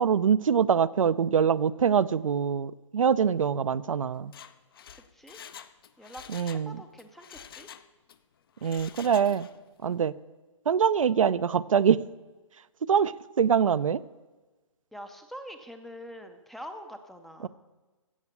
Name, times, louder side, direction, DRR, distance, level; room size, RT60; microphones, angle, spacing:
voice 1, 0.0-4.3 6.3-6.8 8.6-9.5 9.8-10.1 10.7-12.0 12.9-14.0 17.4-17.5, right 7 dB, 75° right, 14 dB, 0.6 m, -24 dB
Mechanisms, 4.2-6.7 7.0-8.2 8.6-9.6 9.9-10.0, left 9 dB, 45° left, 0.7 m, -47 dB
voice 2, 4.9-5.4 6.0-7.7 14.9-17.5, equal, ahead, 7 dB, 0.5 m, -45 dB
16.0 x 6.4 x 8.3 m, 1.2 s
hypercardioid pair, 150°, 17 cm